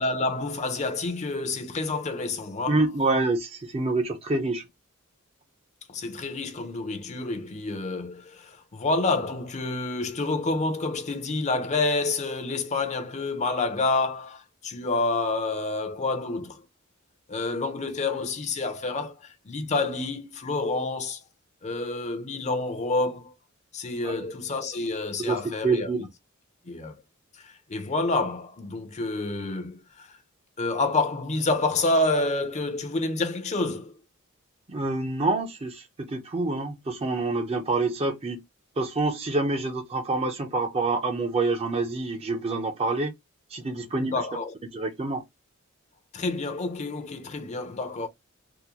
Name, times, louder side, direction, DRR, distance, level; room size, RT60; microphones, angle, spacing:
voice 1, 0.0-2.8 5.9-16.6 17.3-21.2 21.6-23.3 23.7-25.9 26.7-27.0 27.4-30.2 30.6-33.9 44.0-44.5 46.1-48.1, left 3 dB, 35° left, 0.6 m, -28 dB
voice 2, 2.7-4.7 24.0-24.3 25.2-26.1 34.7-38.4 38.8-43.1 43.5-44.1 44.7-45.2, right 3 dB, 30° right, 0.6 m, -27 dB
3.7 x 2.1 x 2.8 m
head